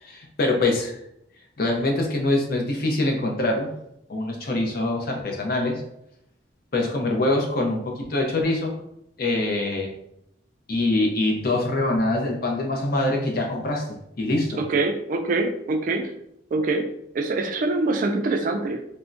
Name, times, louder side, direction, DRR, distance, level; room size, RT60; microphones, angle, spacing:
voice 1, 0.0-0.9 1.6-3.7 4.1-5.8 6.7-8.7 9.2-9.9 10.7-13.8 14.2-14.6, left 2 dB, 55° left, 1 dB, 0.6 m, -24 dB
voice 2, 14.5-16.1 16.5-16.9 17.1-18.9, right 3 dB, 45° right, 4 dB, 0.3 m, -24 dB
3.4 x 2.1 x 2.5 m, 0.78 s
head